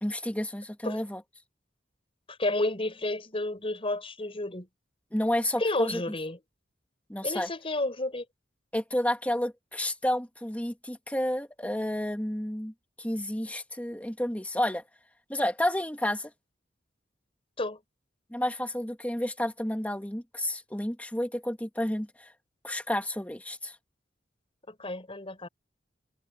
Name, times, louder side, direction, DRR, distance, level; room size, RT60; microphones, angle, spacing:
voice 1, 0.0-1.2 5.1-6.0 7.1-7.5 8.7-14.8 15.3-16.3 18.3-22.3 22.6-23.8, left 1 dB, 10° left, 1.8 m, -31 dB
voice 2, 2.3-4.7 5.6-6.4 7.2-8.2 17.6-17.8 24.7-25.5, left 2 dB, 30° left, 5.1 m, -31 dB
head